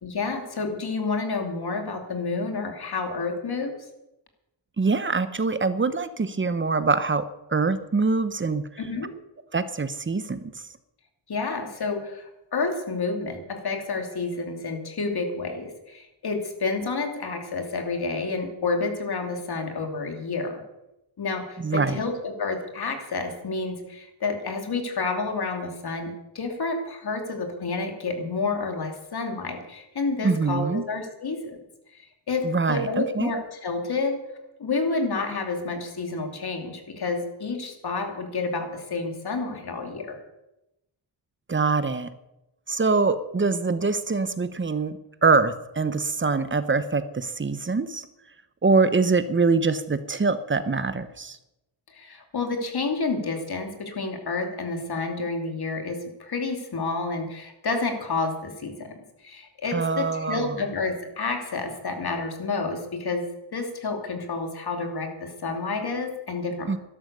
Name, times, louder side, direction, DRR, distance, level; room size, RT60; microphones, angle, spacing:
voice 1, 0.0-3.7 8.8-9.1 11.3-20.6 21.2-31.6 31.9-34.2 34.6-40.2 51.9-66.8, left 3 dB, 55° left, 4 dB, 2.8 m, -29 dB
voice 2, 4.8-7.2 7.5-8.6 9.5-10.5 21.6-22.0 30.2-30.8 32.4-33.3 41.5-42.1 42.7-48.1 48.6-51.4 59.7-60.6 66.7-66.8, right 4 dB, 25° right, 12 dB, 0.9 m, -24 dB
12.5 x 12.0 x 6.7 m, 0.91 s
wide cardioid pair, 125°, 46 cm